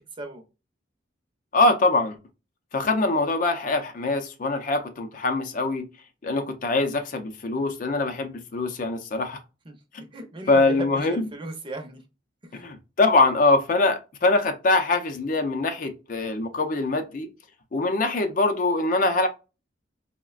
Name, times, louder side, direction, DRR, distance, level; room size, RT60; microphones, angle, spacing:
voice 1, 1.5-2.2 2.7-5.9 6.2-9.4 10.5-11.3 12.5-17.3 17.7-19.3, left 2 dB, 45° left, 0.5 m, -23 dB
voice 2, 10.1-12.0 12.5-12.6, right 2 dB, 25° right, 0.6 m, -36 dB
4.8 x 2.1 x 2.3 m
head